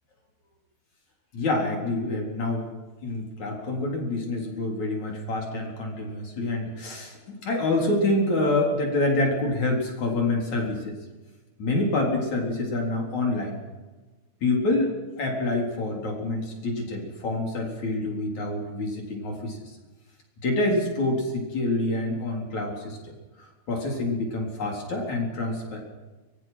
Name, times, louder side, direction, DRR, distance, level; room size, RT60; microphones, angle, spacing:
voice 1, 1.3-2.7 3.0-11.0 11.6-13.6 14.4-19.6 20.4-23.0 23.4-25.8, left 2 dB, 50° left, 0 dB, 5.2 m, -27 dB
25.0 x 22.0 x 5.9 m, 1.2 s
omnidirectional pair, 4.3 m